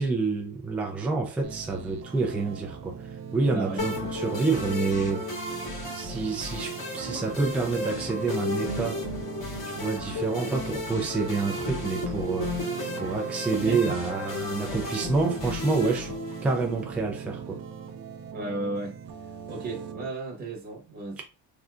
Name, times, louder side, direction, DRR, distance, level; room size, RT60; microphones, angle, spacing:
voice 1, 0.0-5.3 6.0-9.1 9.7-17.6 21.2-21.3, right 4 dB, 5° right, 0.3 m, -28 dB
sound 1, 1.4-20.1, right 6 dB, 75° right, 0.6 m, -41 dB
voice 2, 3.5-3.8 13.7-14.0 18.3-19.0 19.5-21.2, right 2 dB, 25° right, 0.9 m, -34 dB
sound 2, 3.8-16.8, left 2 dB, 55° left, 1.7 m, -34 dB
3.5 x 2.7 x 2.3 m
cardioid pair, 160°, 38 cm